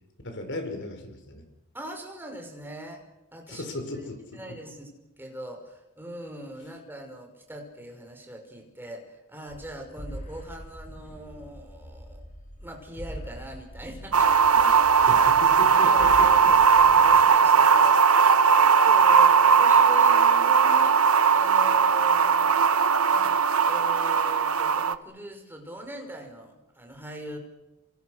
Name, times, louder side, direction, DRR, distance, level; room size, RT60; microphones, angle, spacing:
voice 1, 0.2-1.4 3.5-4.4 15.1-16.5, left 1 dB, 55° left, 6 dB, 5.7 m, -36 dB
voice 2, 1.7-3.0 3.3-3.7 4.3-4.9 5.2-12.2 12.6-15.1 15.8-21.0 21.3-22.6 23.1-23.4 23.7-27.4, right 1 dB, 10° right, 3 dB, 5.5 m, -41 dB
sound 1, 9.5-17.3, equal, 35° left, 5.8 m, -43 dB
sound 2, 14.1-25.0, right 6 dB, 75° right, 1.2 m, -19 dB
28.5 x 26.5 x 6.6 m, 0.97 s
head